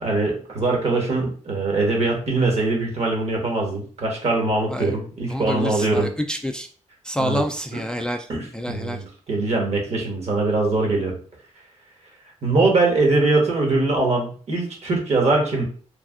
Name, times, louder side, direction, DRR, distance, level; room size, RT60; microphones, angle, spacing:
voice 1, 0.0-6.1 7.2-7.4 7.7-7.8 8.3-11.2 12.4-15.6, right 3 dB, 60° right, 0 dB, 1.3 m, -22 dB
voice 2, 5.3-6.7 7.0-8.3 8.5-9.0, equal, 5° left, 4 dB, 0.3 m, -27 dB
3.2 x 2.6 x 2.4 m, 0.43 s
cardioid pair, 60°, 13 cm